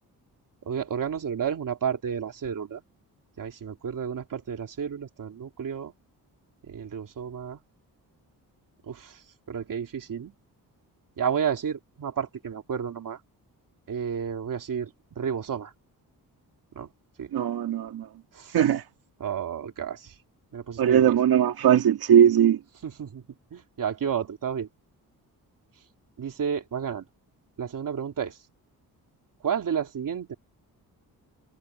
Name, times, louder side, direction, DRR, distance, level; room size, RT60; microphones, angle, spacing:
voice 1, 0.6-2.8 3.4-5.9 6.6-7.6 8.9-9.2 9.5-10.3 11.2-13.2 13.9-15.7 16.7-16.9 17.2-17.3 18.3-18.6 19.2-20.1 20.5-21.2 22.8-23.2 23.5-24.7 26.2-27.1 27.6-28.4 29.4-30.4, right 7 dB, 60° right, 3.0 m, -31 dB
voice 2, 17.3-18.1 18.5-18.8 20.8-22.6, right 9 dB, 80° right, 2.1 m, -20 dB
cardioid pair, 105°, 36 cm